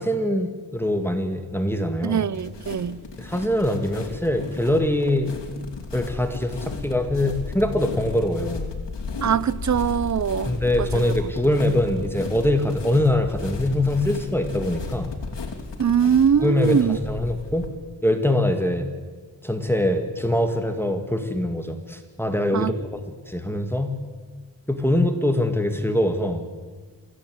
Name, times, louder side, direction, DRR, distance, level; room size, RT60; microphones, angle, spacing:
voice 1, 0.0-2.2 3.2-5.3 5.9-8.7 10.5-15.1 16.4-17.7 18.0-18.9 19.4-24.0 24.7-26.5, left 1 dB, 5° left, 2.0 m, -23 dB
voice 2, 2.0-3.0 9.2-10.5 10.8-11.1 15.8-17.0 22.5-22.7, right 7 dB, 45° right, 0.7 m, -22 dB
sound 1, 2.3-17.7, left 4 dB, 80° left, 3.1 m, -34 dB
23.0 x 16.0 x 9.5 m
wide cardioid pair, 100°, 42 cm